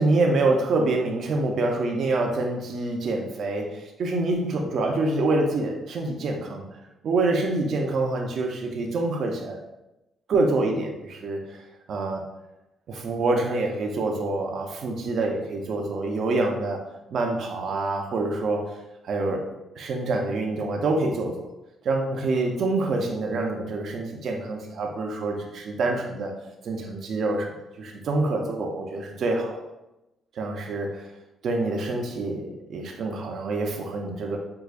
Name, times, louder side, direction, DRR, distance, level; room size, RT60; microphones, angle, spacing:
voice 1, 0.0-6.7 7.0-9.6 10.3-11.6 11.9-12.2 12.9-16.8 17.1-18.7 19.0-19.4 19.8-21.5 21.8-26.3 26.6-27.5 27.8-29.6 30.4-31.1 31.4-34.4, right 2 dB, 60° right, 1 dB, 0.4 m, -26 dB
4.6 x 2.3 x 2.4 m, 0.95 s
cardioid pair, 90°, 0 cm